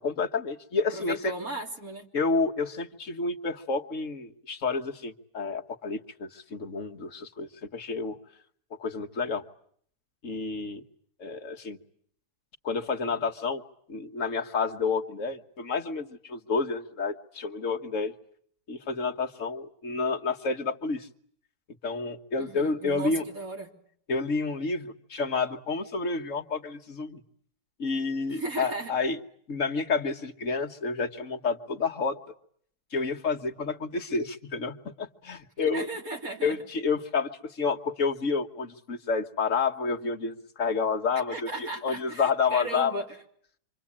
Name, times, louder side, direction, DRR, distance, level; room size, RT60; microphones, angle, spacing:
voice 1, 0.0-1.2 2.1-8.2 8.8-9.4 10.2-10.8 11.2-11.8 12.6-13.6 13.9-18.1 18.7-21.1 21.8-23.2 24.1-27.2 27.8-29.2 29.5-32.2 32.9-35.9 36.4-42.9, left 4 dB, 50° left, 5 dB, 1.7 m, -29 dB
voice 2, 0.9-2.1 22.4-23.7 28.3-28.9 35.6-36.6 41.3-43.1, right 2 dB, 60° right, 2 dB, 3.7 m, -36 dB
26.5 x 26.0 x 8.7 m, 0.64 s
omnidirectional pair, 1.7 m